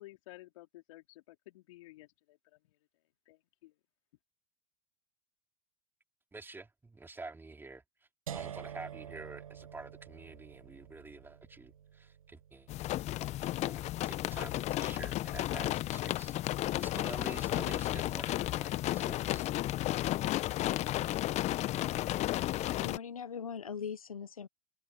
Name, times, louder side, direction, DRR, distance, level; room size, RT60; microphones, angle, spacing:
voice 1, 0.0-2.4 3.3-3.7, left 18 dB, 65° left, 4.0 m, -54 dB
voice 2, 6.3-7.8 8.3-12.7 13.2-13.3 13.6-19.4, right 3 dB, 10° right, 3.1 m, -48 dB
sound 1, 8.3-14.2, right 9 dB, 80° right, 1.2 m, -48 dB
sound 2, 12.7-23.0, left 15 dB, 40° left, 1.0 m, -33 dB
voice 3, 22.5-24.5, left 7 dB, 90° left, 0.9 m, -41 dB
open air
hypercardioid pair, 90°, 17 cm